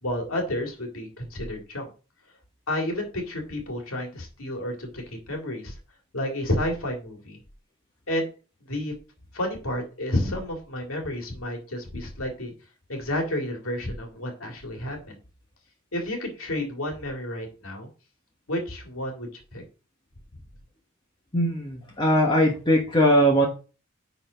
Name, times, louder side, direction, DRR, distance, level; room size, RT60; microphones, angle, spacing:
voice 1, 0.0-1.9 2.7-5.8 6.1-7.4 8.1-8.3 8.7-8.9 9.3-12.5 12.9-15.2 15.9-17.9 18.5-19.6, left 1 dB, 80° left, 2 dB, 2.2 m, -30 dB
voice 2, 21.3-23.5, equal, 20° left, 0 dB, 1.1 m, -20 dB
9.9 x 4.1 x 3.9 m, 0.35 s
head